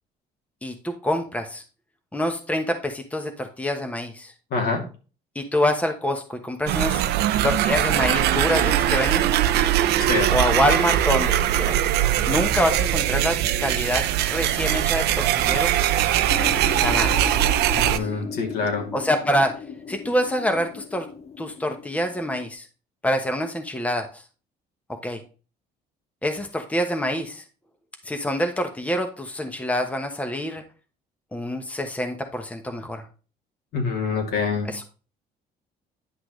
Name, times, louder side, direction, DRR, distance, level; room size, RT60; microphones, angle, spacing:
voice 1, 0.6-1.6 2.1-4.3 5.3-7.0 7.4-9.3 10.3-11.9 12.3-15.7 16.8-17.4 17.7-18.1 18.9-19.6 19.9-21.1 21.4-22.7 23.0-24.2 24.9-25.2 26.2-27.4 28.0-30.6 31.3-33.0 34.6-34.8, equal, 10° left, 5 dB, 1.1 m, -26 dB
voice 2, 4.5-4.8 10.0-10.3 17.8-18.9 33.7-34.7, left 4 dB, 70° left, 1 dB, 2.7 m, -25 dB
sound 1, 6.7-18.0, right 12 dB, 80° right, 0.6 m, -21 dB
sound 2, 16.3-22.5, left 6 dB, 40° left, 0.8 m, -36 dB
10.0 x 5.9 x 3.2 m, 0.35 s
cardioid pair, 110°, 17 cm